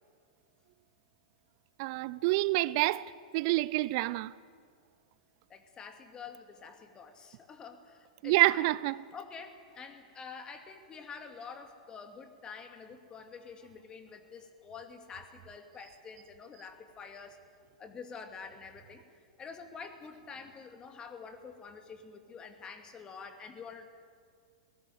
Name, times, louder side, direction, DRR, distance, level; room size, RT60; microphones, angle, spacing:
voice 1, 1.8-4.3 8.2-9.0, right 19 dB, 50° right, 0.6 m, -28 dB
voice 2, 5.5-8.7 9.1-17.4 17.8-19.0 19.4-23.8, left 5 dB, 25° left, 2.6 m, -47 dB
20.0 x 18.5 x 9.4 m
figure-of-eight pair, 100°, 4 cm